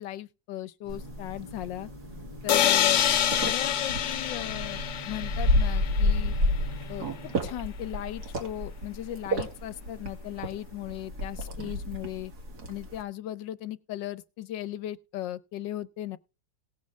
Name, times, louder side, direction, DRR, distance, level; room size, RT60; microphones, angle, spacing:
voice 1, 0.0-1.9 2.4-3.0 3.4-6.3 6.9-7.1 7.4-12.3 12.7-16.2, left 13 dB, 80° left, 1.4 m, -37 dB
sound 1, 0.8-7.4, right 1 dB, 30° left, 1.7 m, -46 dB
sound 2, 0.9-13.0, left 1 dB, 60° right, 2.7 m, -31 dB
sound 3, 2.5-6.3, left 10 dB, 65° left, 0.7 m, -26 dB
18.5 x 6.3 x 3.5 m
omnidirectional pair, 2.0 m